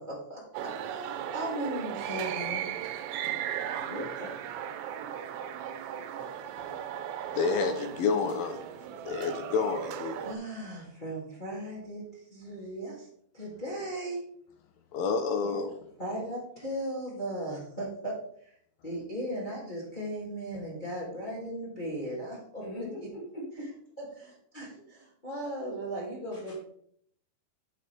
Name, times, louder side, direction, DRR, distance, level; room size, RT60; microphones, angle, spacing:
voice 1, 0.0-2.7 10.2-13.1 13.3-14.2 15.4-15.6 16.0-18.2 18.8-22.9 24.0-26.5, right 1 dB, 15° left, -6 dB, 1.7 m, -37 dB
sound 1, 0.5-10.4, right 10 dB, 85° right, 2.8 m, -36 dB
voice 2, 3.7-4.5 22.6-23.7 26.3-26.5, left 1 dB, 10° right, -9 dB, 2.3 m, -40 dB
voice 3, 7.3-8.6 9.1-10.4 14.9-15.8, left 5 dB, 75° left, 6 dB, 2.2 m, -29 dB
9.6 x 6.7 x 3.4 m, 0.66 s
omnidirectional pair, 4.9 m